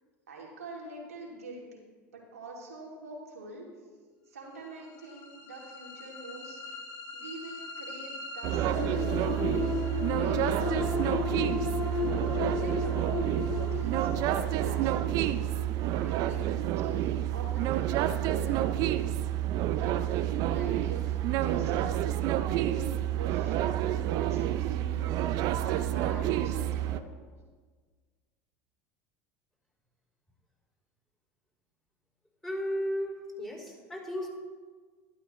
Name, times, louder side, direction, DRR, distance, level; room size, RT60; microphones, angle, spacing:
voice 1, 0.3-1.8 2.1-3.6 4.3-6.8 7.1-9.4 10.0-11.3 11.9-15.5 15.8-18.9 19.6-27.1, right 2 dB, 90° right, -3 dB, 2.6 m, -45 dB
sound 1, 4.7-16.7, left 6 dB, 60° left, 1.8 m, -36 dB
sound 2, 8.4-27.0, right 12 dB, 55° right, 0.6 m, -29 dB
voice 2, 32.4-34.3, equal, 5° left, -4 dB, 3.7 m, -34 dB
12.5 x 11.5 x 3.2 m, 1.5 s
hypercardioid pair, 85°, 8 cm